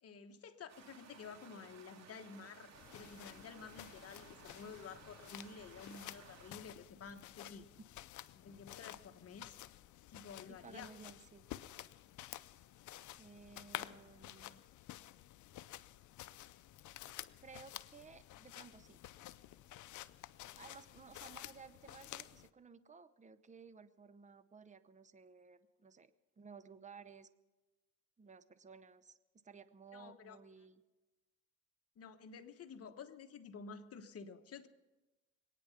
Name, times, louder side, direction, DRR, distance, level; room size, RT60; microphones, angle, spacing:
voice 1, 0.0-7.7 8.3-9.6 10.1-10.9 29.9-30.4 32.0-34.7, left 5 dB, 50° left, 7 dB, 1.2 m, -52 dB
sound 1, 0.7-6.5, right 6 dB, 60° right, 2.5 m, -59 dB
sound 2, 2.7-22.5, left 14 dB, 75° left, 0.6 m, -52 dB
voice 2, 10.5-11.5 13.2-14.6 17.4-19.0 20.5-26.1 26.4-27.3 28.2-30.8, right 5 dB, 25° right, 13 dB, 0.8 m, -57 dB
23.0 x 9.4 x 5.8 m, 1.1 s
cardioid pair, 90°, 30 cm